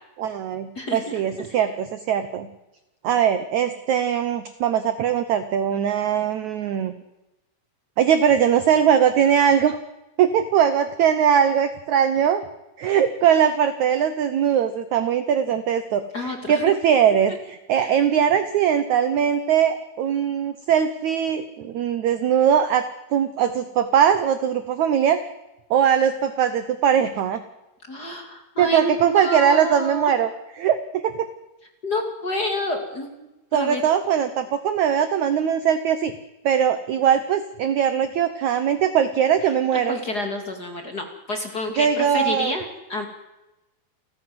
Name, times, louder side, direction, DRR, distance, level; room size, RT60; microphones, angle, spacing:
voice 1, 0.2-2.5 3.0-6.9 8.0-9.8 10.2-12.4 12.8-25.2 25.7-27.4 28.6-31.3 33.5-36.1 36.4-40.0 41.8-42.5, right 8 dB, 85° right, 11 dB, 1.6 m, -21 dB
voice 2, 0.8-1.6 16.1-16.6 17.8-17.9 27.9-30.1 31.8-33.8 39.7-43.1, left 1 dB, 30° left, 4 dB, 2.1 m, -29 dB
29.5 x 15.0 x 7.8 m, 0.99 s
omnidirectional pair, 4.8 m